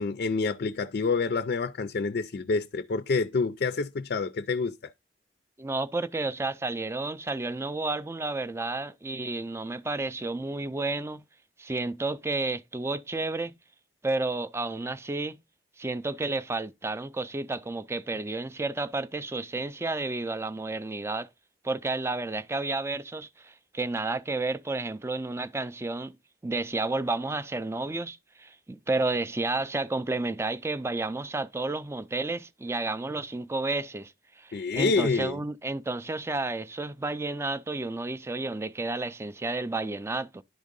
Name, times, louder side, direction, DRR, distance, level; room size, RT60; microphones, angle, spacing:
voice 1, 0.0-4.9 34.5-35.4, left 4 dB, 55° left, 0.4 m, -27 dB
voice 2, 5.6-11.2 11.6-13.6 14.0-15.4 15.8-21.3 21.6-26.2 26.4-40.4, right 2 dB, 15° right, 0.4 m, -31 dB
10.5 x 3.7 x 5.2 m
head